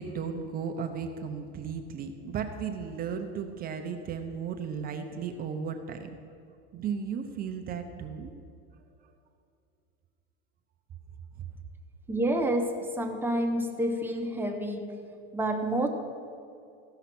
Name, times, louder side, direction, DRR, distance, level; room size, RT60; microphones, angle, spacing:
voice 1, 0.0-6.2 6.7-8.3 9.0-9.1, right 6 dB, 30° right, 5 dB, 0.6 m, -35 dB
voice 2, 12.1-15.0 15.3-15.9, right 1 dB, 5° right, 3 dB, 0.8 m, -29 dB
15.0 x 5.7 x 5.9 m, 2.5 s
supercardioid pair, 140°, 30 cm